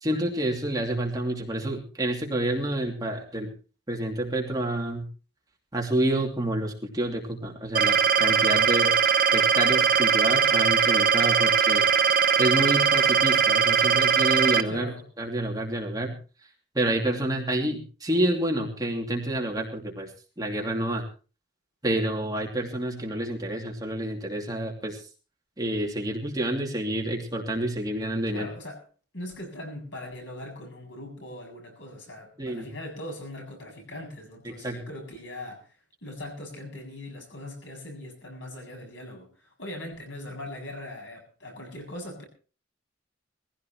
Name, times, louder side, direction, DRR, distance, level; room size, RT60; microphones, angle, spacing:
voice 1, 0.0-3.5 3.9-5.1 5.7-8.9 9.3-14.9 15.2-16.2 16.7-20.1 20.4-21.0 21.8-25.0 25.6-28.5 32.4-32.7 34.4-34.8, right 1 dB, 20° right, 0 dB, 2.9 m, -28 dB
sound 1, 7.7-14.6, right 6 dB, 50° right, 0.8 m, -21 dB
voice 2, 14.6-15.1 28.3-28.8 29.1-35.7 36.0-42.3, left 1 dB, 75° left, 1 dB, 7.5 m, -40 dB
22.0 x 15.5 x 3.1 m, 0.36 s
head